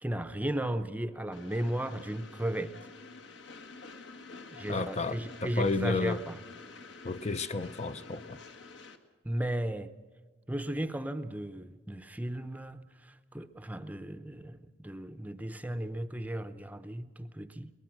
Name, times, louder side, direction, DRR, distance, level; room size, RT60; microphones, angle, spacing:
voice 1, 0.0-2.7 4.5-6.4 9.2-9.9 10.5-17.7, right 1 dB, 10° right, 10 dB, 0.7 m, -35 dB
Train, 1.3-9.0, left 3 dB, 65° left, 1.6 m, -49 dB
voice 2, 4.7-6.2 7.0-8.4, left 3 dB, 35° left, 11 dB, 0.5 m, -32 dB
22.5 x 19.5 x 6.2 m, 1.5 s
head